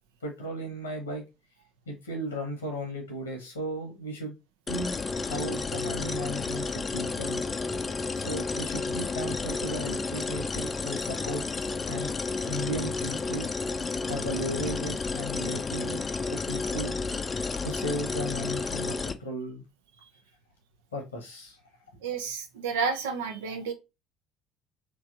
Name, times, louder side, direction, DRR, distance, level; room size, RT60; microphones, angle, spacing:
voice 1, 0.2-1.2 1.9-4.4 4.7-7.4 8.1-12.1 12.5-13.5 14.0-16.0 16.3-16.9 17.6-18.9 19.2-19.6 20.9-21.6, equal, 80° left, 1.2 m, -35 dB
sound 1, 4.7-19.1, left 4 dB, 25° left, 0.5 m, -31 dB
voice 2, 22.0-23.7, right 5 dB, 70° right, 0.7 m, -31 dB
3.3 x 3.0 x 2.6 m
figure-of-eight pair, 55°, 0 cm